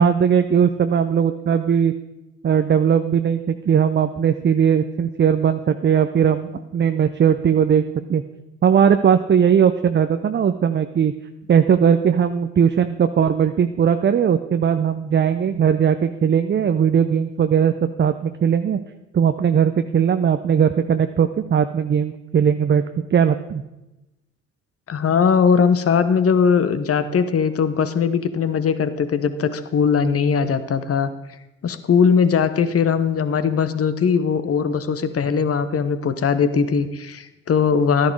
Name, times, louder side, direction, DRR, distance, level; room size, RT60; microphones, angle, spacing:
voice 1, 0.0-1.9 2.4-7.8 8.1-8.2 8.6-11.1 11.5-17.7 18.0-18.8 19.1-22.8 23.1-23.6, right 7 dB, 30° right, 9 dB, 0.6 m, -18 dB
voice 2, 24.9-31.1 31.6-38.1, left 6 dB, 45° left, 12 dB, 1.1 m, -19 dB
11.5 x 10.5 x 4.9 m, 0.98 s
hypercardioid pair, 50°, 34 cm